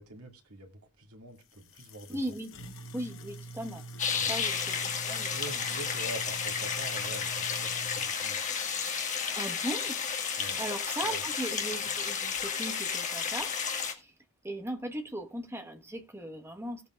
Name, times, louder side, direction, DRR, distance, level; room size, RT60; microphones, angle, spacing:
voice 1, 0.0-2.4 4.2-4.4 5.3-8.5 10.4-10.6 11.0-11.3, right 2 dB, 80° right, 2.0 m, -45 dB
sound 1, 1.4-13.4, right 1 dB, 60° left, 1.1 m, -47 dB
voice 2, 2.1-2.5 2.9-3.8 4.1-4.8 5.1-5.3 9.3-10.0 10.6-13.5 13.8-14.1 14.4-16.8, right 1 dB, 10° right, 1.2 m, -38 dB
sound 2, 4.0-13.9, left 6 dB, 35° left, 1.7 m, -32 dB
17.5 x 8.2 x 2.4 m
head